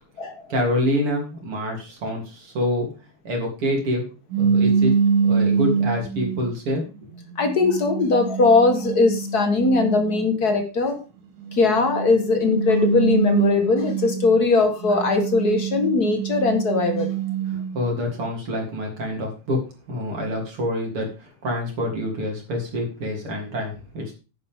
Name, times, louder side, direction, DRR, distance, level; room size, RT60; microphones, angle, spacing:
voice 1, 0.5-2.9 3.2-4.1 4.4-5.0 5.2-6.9 17.5-24.1, left 1 dB, 45° right, 0 dB, 3.9 m, -26 dB
sound 1, 4.3-6.5 7.1-10.3 11.4-14.4 14.8-17.8, right 6 dB, 80° right, 2.9 m, -24 dB
voice 2, 7.4-10.9 11.5-17.1, left 3 dB, 45° left, 6 dB, 1.4 m, -20 dB
10.5 x 9.7 x 3.7 m, 0.32 s
omnidirectional pair, 3.7 m